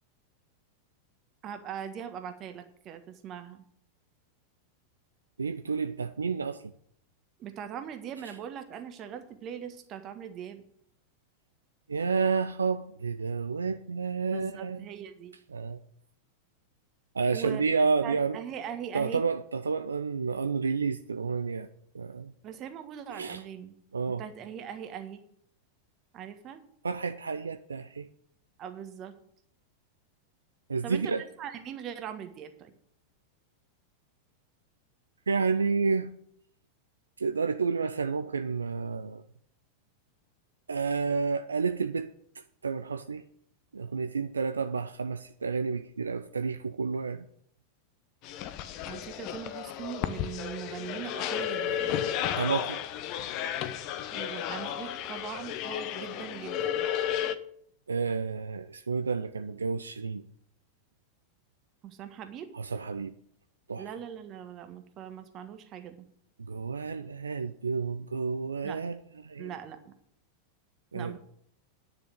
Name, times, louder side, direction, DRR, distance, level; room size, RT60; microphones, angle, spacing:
voice 1, 1.4-3.6 7.4-10.6 14.3-15.3 17.3-17.6 18.0-19.2 22.4-23.7 24.1-25.2 26.1-26.6 28.6-29.2 30.8-32.7 48.9-52.0 54.1-56.9 61.8-62.5 63.8-66.1 68.6-68.8 69.4-69.9 70.9-71.2, right 9 dB, 35° right, 1.5 m, -41 dB
voice 2, 5.4-6.6 8.3-8.4 11.9-14.9 15.5-15.8 17.1-18.4 18.9-21.7 21.9-22.3 23.1-23.4 23.9-24.2 26.8-28.1 30.7-31.2 35.3-36.1 37.2-39.2 40.7-42.1 42.6-43.2 43.7-47.3 52.2-52.8 57.9-60.2 62.5-63.1 63.7-63.8 66.4-69.0 69.2-69.5 70.9-71.2, right 5 dB, 75° right, 0.5 m, -30 dB
sound 1, 48.2-57.4, left 10 dB, 40° left, 0.9 m, -33 dB
10.0 x 6.8 x 8.7 m
figure-of-eight pair, 90°, 0 cm